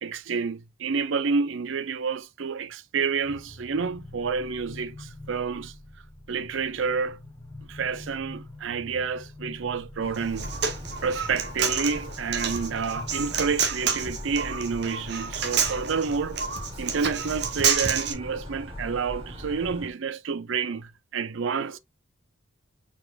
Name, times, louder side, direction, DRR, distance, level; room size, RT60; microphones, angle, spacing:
voice 1, 0.0-5.7 6.3-7.2 7.7-10.5 11.0-16.4 16.8-21.8, right 5 dB, 75° right, 0.5 m, -29 dB
sound 1, 3.2-13.3, left 2 dB, 15° left, 0.8 m, -45 dB
sound 2, 10.0-19.9, left 1 dB, 30° right, 2.1 m, -40 dB
Human voice, 10.1-18.1, right 6 dB, 55° right, 1.0 m, -28 dB
4.5 x 4.3 x 2.4 m
head